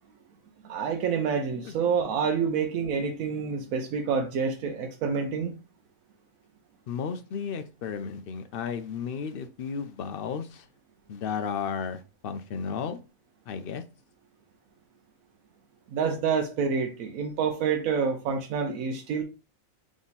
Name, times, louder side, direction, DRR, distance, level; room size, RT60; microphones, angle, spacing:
voice 1, 0.6-5.5 15.9-19.2, right 6 dB, 90° right, 1.1 m, -28 dB
voice 2, 6.9-10.7 11.1-13.0 13.5-13.8, left 6 dB, 65° left, 0.6 m, -33 dB
3.7 x 3.0 x 4.0 m
omnidirectional pair, 1.4 m